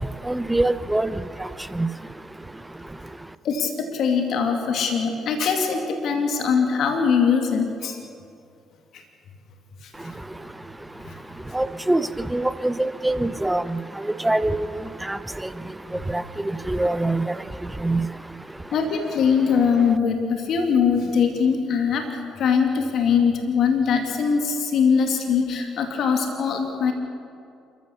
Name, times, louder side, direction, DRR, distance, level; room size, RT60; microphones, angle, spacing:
voice 1, 0.3-1.1 1.8-1.9 11.5-12.0 12.3-13.8 14.2-14.7 15.1-15.2 16.1-16.2 16.7-17.2 17.8-18.1, right 2 dB, 10° right, 14 dB, 1.0 m, -23 dB
voice 2, 3.4-8.0 18.7-22.0 22.4-26.9, left 6 dB, 60° left, 4 dB, 2.4 m, -22 dB
28.0 x 14.5 x 6.9 m, 2.5 s
hypercardioid pair, 50°, 0 cm